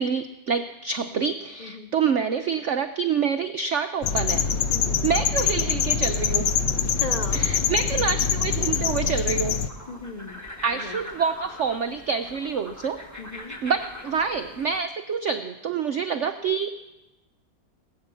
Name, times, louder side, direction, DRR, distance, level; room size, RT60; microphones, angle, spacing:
voice 1, 0.0-4.5 5.0-6.5 7.3-9.6 10.6-13.0 13.6-16.7, right 6 dB, 85° right, 8 dB, 0.6 m, -27 dB
voice 2, 1.6-1.9 4.7-5.0 6.9-7.4 9.9-10.4 10.7-11.0 13.2-13.6, left 3 dB, 55° left, 6 dB, 0.4 m, -37 dB
sound 1, 4.0-9.7, left 7 dB, 80° left, 1.4 m, -24 dB
sound 2, 9.7-14.8, left 1 dB, 10° left, 1.3 m, -42 dB
19.0 x 8.8 x 6.9 m, 1.0 s
omnidirectional pair, 2.0 m